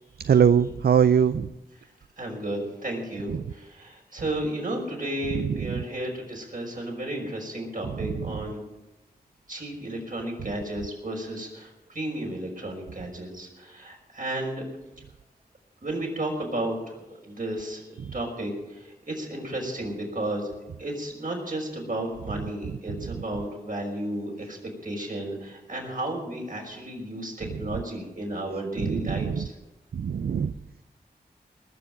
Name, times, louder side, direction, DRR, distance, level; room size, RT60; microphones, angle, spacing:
voice 1, 0.2-1.5 5.7-5.8 18.0-18.1 28.8-29.5 29.9-30.5, right 7 dB, 75° right, 13 dB, 0.4 m, -22 dB
voice 2, 2.2-8.6 9.5-14.6 15.8-17.8 18.1-20.5 20.8-29.5, right 1 dB, 55° right, -1 dB, 5.7 m, -33 dB
20.0 x 7.0 x 9.2 m, 1.1 s
cardioid pair, 50°, 17 cm